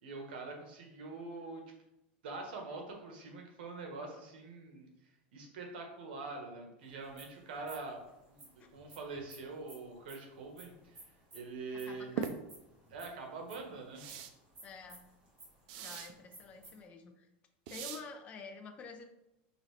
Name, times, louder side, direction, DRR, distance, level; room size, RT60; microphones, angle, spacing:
voice 1, 0.0-1.6 2.2-4.9 5.3-11.0 11.3-12.1 12.9-14.0, right 3 dB, 80° right, 2 dB, 1.1 m, -44 dB
sound 1, 6.8-16.8, right 2 dB, 25° right, 1.6 m, -57 dB
voice 2, 11.8-12.4 14.6-15.1 15.8-17.3 17.7-19.1, left 5 dB, 25° left, 5 dB, 0.5 m, -49 dB
sound 2, 12.2-12.3 14.0-14.3 15.7-16.1 17.7-18.0, right 8 dB, 55° right, 0.4 m, -39 dB
5.0 x 2.7 x 3.2 m, 0.90 s
supercardioid pair, 160°, 5 cm